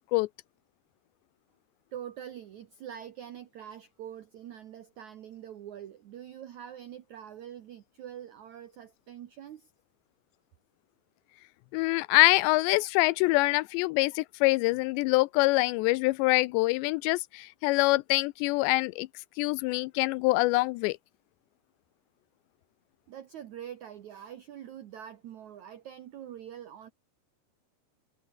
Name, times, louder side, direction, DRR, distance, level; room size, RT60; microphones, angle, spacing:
voice 1, 1.9-9.7 23.1-26.9, right 10 dB, 75° right, 1.7 m, -44 dB
voice 2, 11.7-19.1 19.4-21.0, left 22 dB, 85° left, 2.7 m, -25 dB
omnidirectional pair, 5.0 m